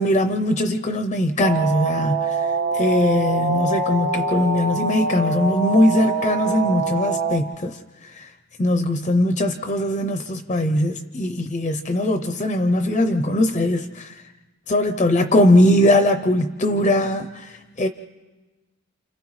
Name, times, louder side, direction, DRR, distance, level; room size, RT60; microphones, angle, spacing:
voice 1, 0.0-2.3 2.7-7.8 8.2-8.3 8.6-14.1 14.7-17.9, left 1 dB, 30° left, 7 dB, 0.5 m, -20 dB
sound 1, 1.4-7.4, right 4 dB, 65° right, 1.5 m, -24 dB
30.0 x 28.5 x 3.1 m, 1.2 s
head